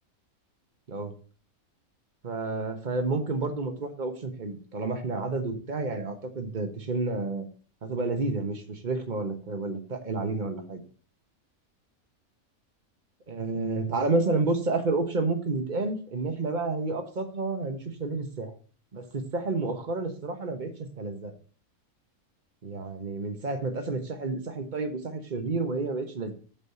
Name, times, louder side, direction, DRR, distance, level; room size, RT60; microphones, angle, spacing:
voice 1, 2.2-7.5 7.8-10.8 13.3-18.5 18.9-21.3 22.6-26.3, right 3 dB, 35° right, 6 dB, 1.3 m, -30 dB
7.4 x 5.0 x 6.8 m, 0.41 s
omnidirectional pair, 1.5 m